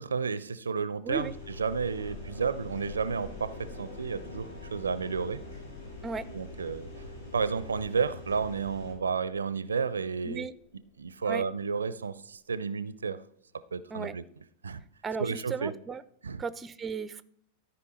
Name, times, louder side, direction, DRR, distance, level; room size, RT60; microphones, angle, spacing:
voice 1, 0.0-1.3 1.6-5.4 6.3-6.9 7.3-10.5 11.0-13.2 13.7-14.2 14.6-14.8 15.2-15.7 16.2-16.4, right 5 dB, 75° right, 0.4 m, -31 dB
sound 1, 1.1-8.9, left 1 dB, 70° left, 3.0 m, -44 dB
sound 2, 1.1-12.4, left 5 dB, 40° left, 4.0 m, -52 dB
voice 2, 15.0-16.0 16.4-17.2, right 5 dB, 15° right, 0.4 m, -35 dB
13.5 x 5.4 x 4.2 m
figure-of-eight pair, 90°, 0 cm